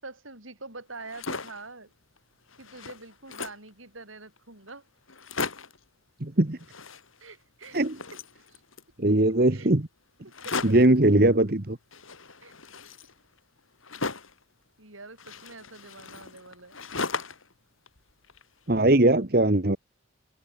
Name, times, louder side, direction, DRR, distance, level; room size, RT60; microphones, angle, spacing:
voice 1, 0.0-1.9 2.6-4.9 7.2-7.9 8.5-8.6 9.0-9.1 9.5-9.7 10.2-10.8 12.4-12.5 14.8-16.8, right 3 dB, 80° right, 8.0 m, -45 dB
sound 1, 0.9-1.7 2.2-2.3 2.5-3.7 4.4-4.5 4.7-4.8 5.1-5.8 6.6-7.4 7.6-8.9 10.3-11.0 11.9-14.4 15.2-17.5 17.9-18.8, left 4 dB, 85° left, 7.0 m, -37 dB
voice 2, 6.2-6.6 7.7-7.9 9.0-9.9 10.6-11.8 18.7-19.8, right 1 dB, 45° right, 1.4 m, -20 dB
head